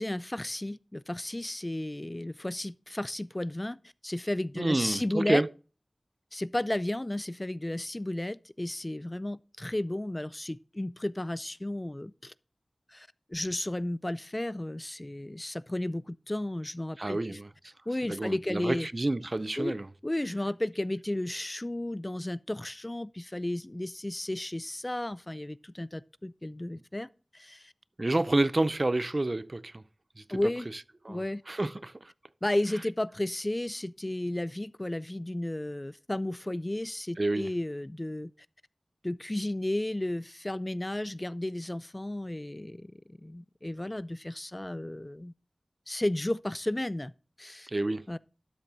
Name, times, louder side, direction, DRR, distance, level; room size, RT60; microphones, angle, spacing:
voice 1, 0.0-3.8 4.0-5.4 6.3-12.3 12.9-17.4 17.9-18.9 19.6-19.8 20.0-27.7 30.3-30.7 31.1-31.4 32.4-38.3 39.0-45.3 45.9-47.1 47.4-47.7 48.1-48.2, left 1 dB, 25° left, 0.3 m, -33 dB
voice 2, 4.6-5.5 17.0-17.5 18.0-19.9 28.0-29.8 30.2-30.5 31.0-32.1 37.2-37.5 47.7-48.1, right 2 dB, 45° right, 0.4 m, -29 dB
12.5 x 7.4 x 2.7 m
wide cardioid pair, 55°, 0 cm